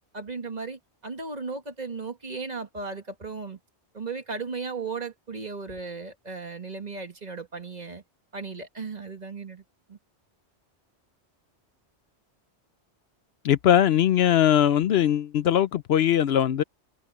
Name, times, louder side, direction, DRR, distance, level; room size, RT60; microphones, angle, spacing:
voice 1, 0.1-3.6 3.9-8.0 8.3-9.6 9.9-10.0, right 4 dB, 40° right, 1.6 m, -36 dB
voice 2, 13.4-16.6, left 10 dB, 70° left, 0.8 m, -20 dB
omnidirectional pair, 1.1 m